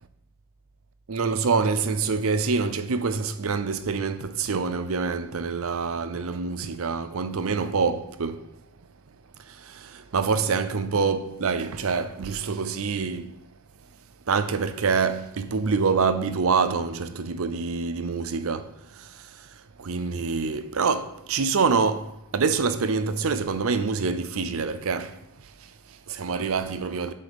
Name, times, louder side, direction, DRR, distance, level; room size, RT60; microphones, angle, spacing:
voice 1, 1.1-8.5 9.4-13.4 14.3-27.1, right 5 dB, 70° right, 0.6 m, -26 dB
6.8 x 5.0 x 7.0 m
head